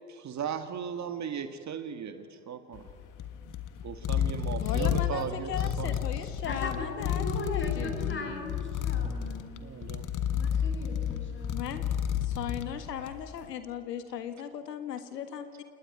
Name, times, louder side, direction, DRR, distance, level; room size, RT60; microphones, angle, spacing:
voice 1, 0.1-2.9 3.8-6.0 9.6-10.1, right 7 dB, 35° right, 8 dB, 1.9 m, -37 dB
sound 1, 2.7-13.3, left 9 dB, 40° left, 1.7 m, -31 dB
voice 2, 4.6-8.5 11.5-11.9 12.2-15.6, left 9 dB, 85° left, 9 dB, 1.7 m, -38 dB
voice 3, 6.4-9.8 10.3-12.0, left 2 dB, 25° left, 3 dB, 7.3 m, -39 dB
28.0 x 19.0 x 9.5 m, 2.3 s
hypercardioid pair, 85°, 47 cm